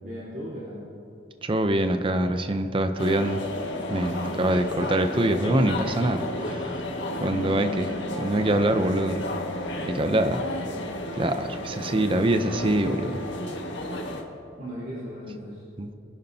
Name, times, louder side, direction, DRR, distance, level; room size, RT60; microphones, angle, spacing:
voice 1, 0.0-0.8 4.3-4.4 7.2-7.9 9.7-10.4 14.6-15.6, equal, 50° right, -10 dB, 3.7 m, -38 dB
voice 2, 1.4-3.4 3.9-6.6 7.2-7.9 8.2-9.2 9.8-10.4 11.2-13.2 15.8-15.9, right 1 dB, 30° right, 8 dB, 0.5 m, -24 dB
sound 1, 3.0-14.2, left 1 dB, 75° left, 1.6 m, -32 dB
25.0 x 11.0 x 2.7 m, 2.7 s
head